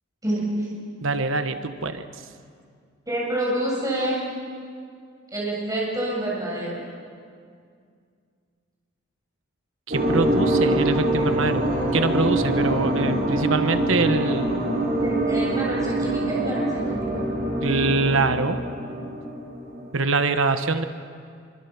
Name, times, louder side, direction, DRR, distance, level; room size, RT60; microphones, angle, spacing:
voice 1, 0.2-0.7 3.1-4.2 5.3-6.8 15.0-17.1, right 1 dB, 15° right, -5 dB, 6.8 m, -27 dB
voice 2, 1.0-2.0 9.9-14.5 17.6-18.6 19.9-20.8, right 3 dB, 70° right, 9 dB, 1.2 m, -24 dB
sound 1, 9.9-19.9, right 1 dB, 45° right, 4.4 m, -24 dB
25.0 x 24.0 x 7.2 m, 2.2 s
head